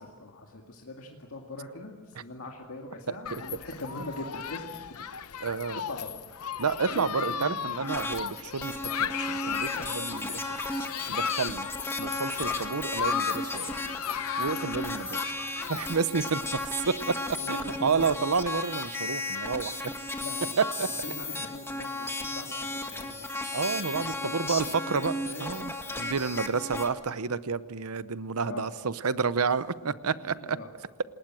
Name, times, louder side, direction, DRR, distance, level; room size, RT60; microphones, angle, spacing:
voice 1, 0.0-5.0 5.9-6.1 6.5-7.7 12.4-12.6 14.6-14.7 17.4-18.0 20.2-20.5 20.8-23.4 23.9-24.4 24.7-25.5 25.8-26.6 26.9-27.3 28.4-28.7 29.1-29.5 29.8-30.7, left 2 dB, 70° left, 0 dB, 2.2 m, -43 dB
voice 2, 3.1-3.4 5.4-5.8 6.6-10.6 11.1-11.7 12.0-13.7 14.4-15.3 15.7-17.2 17.5-19.9 20.6-20.9 23.5-25.1 25.4-25.7 26.0-30.6, right 5 dB, 80° right, 15 dB, 0.8 m, -30 dB
Human group actions, 3.3-15.9, left 8 dB, 90° left, 0.8 m, -35 dB
sound 1, 7.9-8.2 8.6-26.9, left 2 dB, 10° left, 1.8 m, -35 dB
28.0 x 19.5 x 7.7 m, 1.4 s
head